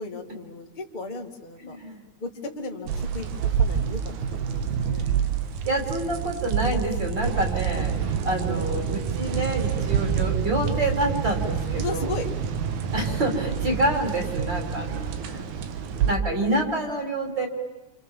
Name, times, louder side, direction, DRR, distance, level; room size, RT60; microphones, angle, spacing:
voice 1, 0.0-1.8 2.2-5.1 11.8-12.3, left 3 dB, 15° left, 1 dB, 2.1 m, -35 dB
voice 2, 1.6-2.0 5.1-5.2 5.6-8.0 8.2-12.1 12.9-15.5 15.9-17.5, right 1 dB, 35° right, 2 dB, 4.2 m, -27 dB
sound 1, 2.9-16.2, right 7 dB, 80° right, 2.8 m, -27 dB
28.5 x 28.5 x 7.4 m, 1.0 s
omnidirectional pair, 3.4 m